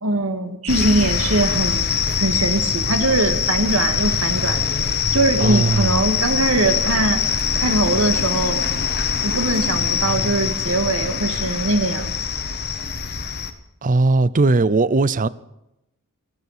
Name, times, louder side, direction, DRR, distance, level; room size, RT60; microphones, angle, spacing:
voice 1, 0.0-1.8 2.2-4.6 5.1-7.2 7.5-8.6 9.2-12.2, right 2 dB, 70° right, 2.2 m, -21 dB
sound 1, 0.7-13.5, left 6 dB, 50° left, 1.4 m, -23 dB
voice 2, 5.4-6.1 13.8-15.3, right 3 dB, 40° right, 0.6 m, -18 dB
28.0 x 9.6 x 5.1 m
head